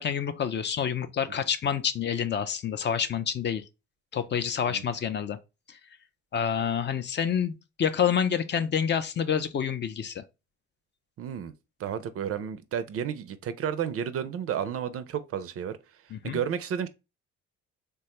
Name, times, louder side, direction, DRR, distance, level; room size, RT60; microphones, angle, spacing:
voice 1, 0.0-3.6 4.1-5.4 5.7-5.8 6.3-10.2 16.1-16.4, left 8 dB, 40° left, 0.4 m, -28 dB
voice 2, 11.2-11.5 11.8-15.8 16.2-16.9, right 8 dB, 50° right, 0.5 m, -32 dB
3.2 x 2.2 x 2.9 m
supercardioid pair, 75°, 29 cm